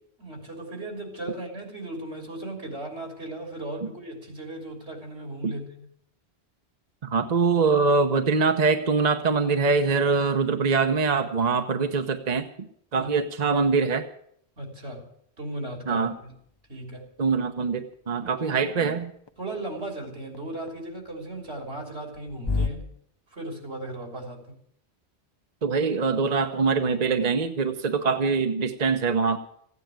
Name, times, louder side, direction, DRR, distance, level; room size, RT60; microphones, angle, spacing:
voice 1, 0.2-5.9 13.0-13.1 14.6-15.1 15.4-16.3 16.7-17.1 18.3-18.9 19.4-22.9 23.3-24.6, right 1 dB, 75° right, 3.8 m, -37 dB
voice 2, 7.0-12.5 12.9-14.1 15.9-16.1 17.2-19.1 25.6-29.4, right 4 dB, 40° right, 1.0 m, -23 dB
sound 1, 16.0-22.7, left 4 dB, 25° left, 0.7 m, -37 dB
15.5 x 9.5 x 9.1 m
omnidirectional pair, 1.1 m